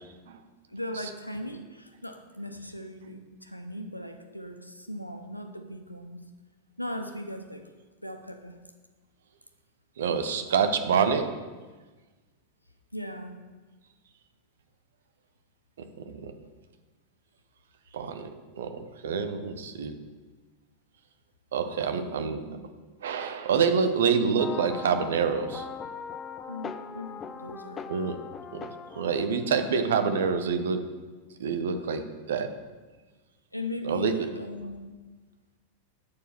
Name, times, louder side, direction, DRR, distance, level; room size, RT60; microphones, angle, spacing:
voice 1, 0.7-6.2 6.8-7.7 8.0-8.6 12.9-13.4 21.8-22.6 26.5-27.9 33.5-35.0, left 1 dB, 90° left, 6 dB, 0.7 m, -38 dB
voice 2, 10.0-11.4 15.8-16.4 17.9-20.0 21.5-22.4 23.0-25.7 27.9-28.2 28.5-30.9 31.4-32.5 33.8-34.3, right 6 dB, 60° right, 9 dB, 0.8 m, -27 dB
sound 1, 24.4-29.5, left 6 dB, 20° left, 0.5 m, -40 dB
8.4 x 4.6 x 6.3 m, 1.3 s
figure-of-eight pair, 90°, 0 cm